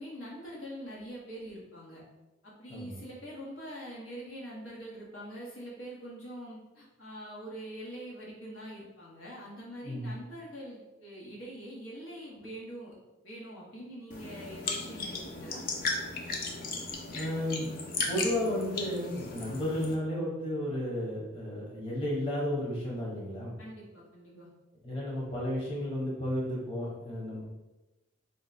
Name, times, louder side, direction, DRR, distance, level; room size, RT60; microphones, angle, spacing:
voice 1, 0.0-2.0 2.4-13.0 13.2-15.6 23.6-24.5, equal, 80° left, -5 dB, 1.4 m, -44 dB
sound 1, 14.1-19.9, left 3 dB, 45° left, 0.5 m, -36 dB
voice 2, 17.1-17.7 18.1-23.5 24.8-27.4, left 1 dB, 25° left, -5 dB, 0.9 m, -33 dB
3.9 x 2.2 x 4.1 m, 1.0 s
head